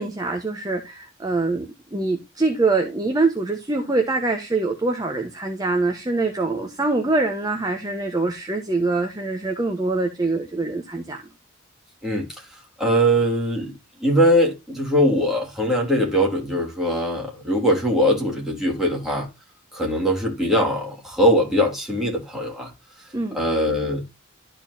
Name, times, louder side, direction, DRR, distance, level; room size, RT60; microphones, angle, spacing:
voice 1, 0.0-11.2 23.1-23.4, right 3 dB, 20° right, 1.0 m, -24 dB
voice 2, 12.8-19.3 19.7-22.7 23.3-24.0, equal, ahead, 2.9 m, -21 dB
13.0 x 4.5 x 2.7 m
head